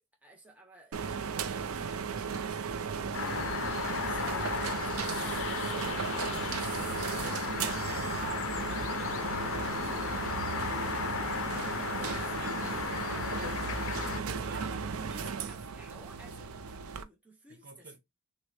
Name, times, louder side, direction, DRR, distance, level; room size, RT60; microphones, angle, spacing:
voice 1, 0.0-7.3 12.0-13.8 14.4-18.0, right 1 dB, 5° right, 0.7 m, -53 dB
sound 1, 0.9-17.0, right 6 dB, 75° right, 0.5 m, -35 dB
sound 2, 3.1-14.2, left 7 dB, 65° left, 0.5 m, -35 dB
voice 2, 5.2-6.7 7.2-10.5 12.4-14.9 17.5-18.0, right 4 dB, 50° right, 1.1 m, -48 dB
6.2 x 2.2 x 3.2 m
head